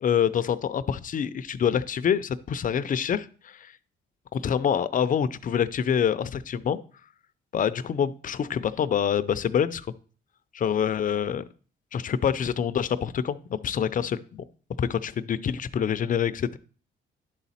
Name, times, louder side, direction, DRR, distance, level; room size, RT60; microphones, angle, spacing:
voice 1, 0.0-3.7 4.3-6.8 7.5-9.9 10.5-11.4 11.9-14.4 14.8-16.6, left 8 dB, 40° left, 14 dB, 0.5 m, -26 dB
11.0 x 4.1 x 4.2 m, 0.41 s
cardioid pair, 90°, 20 cm